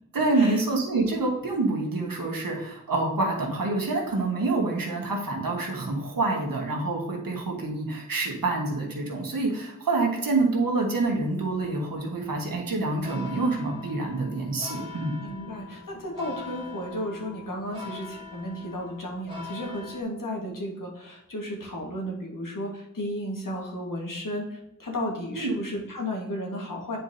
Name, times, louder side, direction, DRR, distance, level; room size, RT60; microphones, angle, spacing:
voice 1, 0.1-15.2 25.3-25.5, right 3 dB, 90° right, 0 dB, 1.3 m, -27 dB
sound 1, 11.0-20.0, left 4 dB, 15° right, 1.7 m, -43 dB
voice 2, 15.2-27.0, equal, 75° left, -1 dB, 1.5 m, -34 dB
9.1 x 4.5 x 2.7 m, 0.84 s
wide cardioid pair, 55°, 33 cm